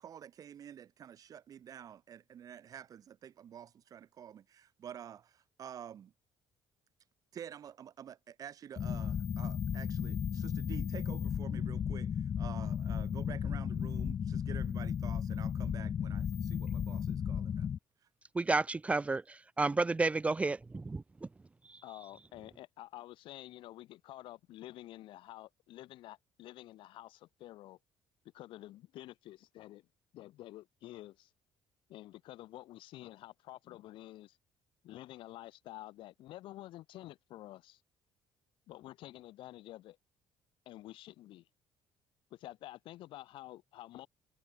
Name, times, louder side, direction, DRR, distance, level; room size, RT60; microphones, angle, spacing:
voice 1, 0.0-6.1 7.3-17.7, right 9 dB, 45° right, 3.1 m, -49 dB
sound 1, 8.8-17.8, left 8 dB, 30° left, 0.4 m, -35 dB
voice 2, 18.3-21.3 21.6-21.8, right 3 dB, 15° right, 1.4 m, -32 dB
voice 3, 21.8-27.8 28.3-29.9 30.1-31.3 31.9-34.4 34.8-37.8 38.7-40.0 40.6-41.5 42.3-44.1, left 15 dB, 70° left, 2.9 m, -49 dB
cardioid pair, 155°, 9 cm